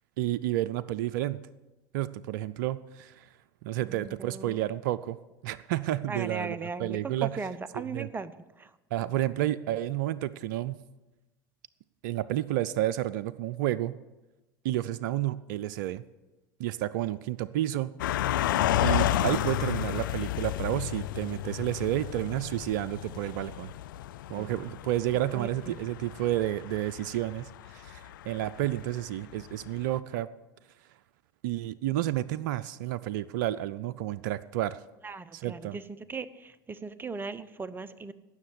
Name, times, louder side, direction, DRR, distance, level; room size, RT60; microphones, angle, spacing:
voice 1, 0.2-1.4 1.9-3.3 3.6-5.2 5.4-7.3 7.9-8.1 8.9-10.7 12.0-13.9 14.6-16.0 16.6-17.9 18.8-23.7 24.3-30.3 31.4-34.8 35.3-35.8, right 14 dB, 70° right, 16 dB, 0.5 m, -30 dB
voice 2, 3.8-4.6 6.1-8.3 8.6-8.7 24.3-24.5 25.3-25.8 35.0-35.8 36.1-38.1, right 4 dB, 20° right, 15 dB, 0.9 m, -38 dB
sound 1, 18.0-29.7 30.0-30.1, left 12 dB, 80° left, 0.5 m, -32 dB
17.0 x 6.5 x 7.8 m, 1.1 s
hypercardioid pair, 80°, 11 cm